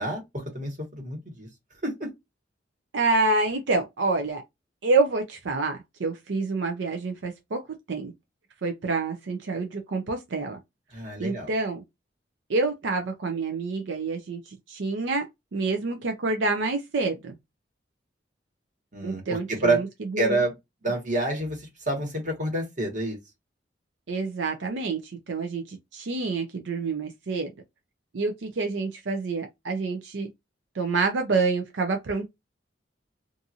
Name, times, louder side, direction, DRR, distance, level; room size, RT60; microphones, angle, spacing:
voice 1, 0.0-1.5 1.8-2.1 10.9-11.5 18.9-19.8 20.2-20.5 20.8-23.2, right 2 dB, 45° right, 1.3 m, -28 dB
voice 2, 2.9-4.4 4.8-7.6 7.9-8.1 8.6-10.6 11.2-11.8 12.5-17.4 19.0-19.9 20.1-20.4 24.1-27.5 28.1-30.3 30.7-32.2, right 3 dB, 80° right, 0.5 m, -27 dB
2.6 x 2.5 x 2.7 m
head